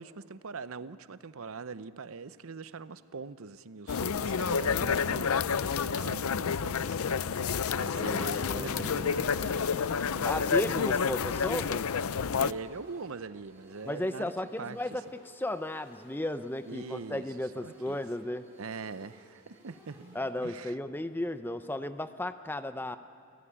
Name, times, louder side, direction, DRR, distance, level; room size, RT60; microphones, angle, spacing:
voice 1, 0.0-7.3 7.7-10.5 12.4-14.3 14.6-15.0 16.7-18.0 18.6-20.8, right 4 dB, 75° right, 14 dB, 0.7 m, -43 dB
sound 1, 3.9-12.5, left 6 dB, 80° left, 0.5 m, -29 dB
voice 2, 7.9-9.1 10.2-11.8 13.9-15.0 15.4-18.5 20.1-23.0, left 1 dB, 10° left, 10 dB, 0.5 m, -34 dB
sound 2, 9.3-20.3, right 1 dB, 10° right, 5.5 m, -58 dB
29.0 x 15.0 x 9.9 m, 2.6 s
head